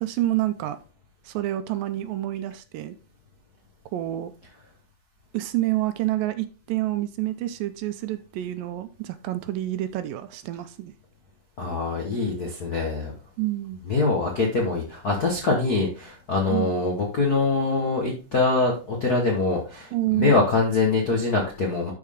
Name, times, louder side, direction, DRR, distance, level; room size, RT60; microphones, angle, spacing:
voice 1, 0.0-0.8 1.3-3.0 3.9-4.3 5.3-10.9 13.4-13.8 16.5-16.8 19.9-20.4, right 15 dB, 80° right, 2.2 m, -28 dB
voice 2, 11.6-13.1 13.9-21.9, left 3 dB, 60° left, 0.9 m, -24 dB
12.0 x 4.6 x 3.7 m
omnidirectional pair, 4.2 m